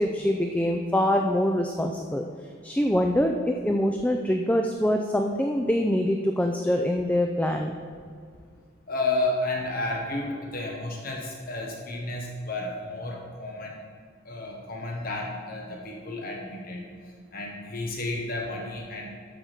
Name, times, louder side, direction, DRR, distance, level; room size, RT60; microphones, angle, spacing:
voice 1, 0.0-2.3 2.6-7.8, left 1 dB, 5° left, 3 dB, 0.4 m, -24 dB
voice 2, 8.9-13.8 14.2-16.9 17.3-19.1, left 2 dB, 45° left, -1 dB, 1.1 m, -31 dB
12.0 x 4.7 x 6.6 m, 2.1 s
head